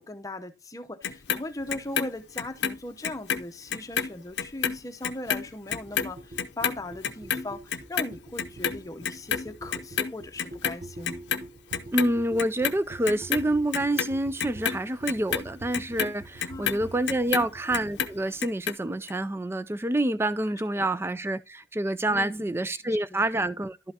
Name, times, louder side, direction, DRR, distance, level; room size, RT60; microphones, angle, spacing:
voice 1, 0.0-11.2 16.5-17.0 17.3-17.5 20.8-20.9 22.1-22.5 22.8-23.3, left 2 dB, 20° left, 0.8 m, -39 dB
Clock, 1.0-3.4 3.7-10.1 10.4-11.4 11.7-12.7 13.1-17.5 17.7-18.7 19.1-19.2, left 7 dB, 80° left, 0.6 m, -29 dB
sound 1, 5.7-18.2, right 2 dB, 55° right, 0.9 m, -45 dB
voice 2, 11.9-23.9, right 1 dB, 15° right, 0.4 m, -27 dB
11.5 x 5.5 x 2.8 m
head